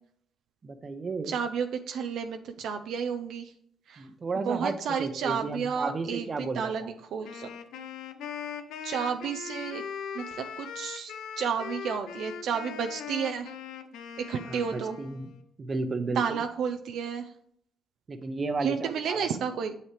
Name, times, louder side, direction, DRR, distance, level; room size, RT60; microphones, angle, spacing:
voice 1, 0.6-1.3 4.0-4.7 5.0-6.9 14.5-15.3 15.6-16.4 18.1-19.3, right 3 dB, 35° right, 9 dB, 0.8 m, -33 dB
voice 2, 1.3-3.5 3.9-4.1 4.4-7.5 8.8-9.8 10.1-13.5 14.2-15.0 16.1-17.3 18.6-19.7, right 7 dB, 75° right, 6 dB, 0.5 m, -32 dB
Wind instrument woodwind instrument, 7.2-15.4, left 7 dB, 90° left, 0.6 m, -40 dB
7.2 x 5.6 x 3.3 m, 0.67 s
cardioid pair, 90°, 0 cm